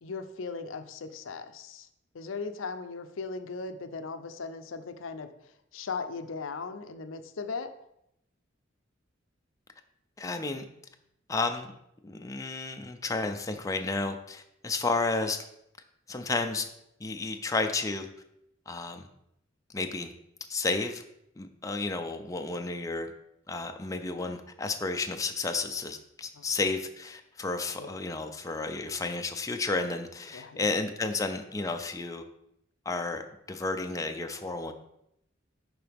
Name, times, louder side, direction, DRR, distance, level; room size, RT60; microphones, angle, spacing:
voice 1, 0.0-1.9 2.1-5.3 5.7-7.7 26.3-26.4 27.8-27.9 30.3-30.7, left 4 dB, 85° left, 9 dB, 0.5 m, -38 dB
voice 2, 10.2-10.6 11.3-11.7 12.0-15.4 16.1-16.7 17.0-18.1 18.7-19.1 19.7-20.1 20.5-21.0 21.4-23.1 23.5-32.2 32.9-33.2 33.5-34.7, left 3 dB, 15° left, 5 dB, 0.4 m, -32 dB
10.5 x 4.0 x 3.4 m, 0.78 s
head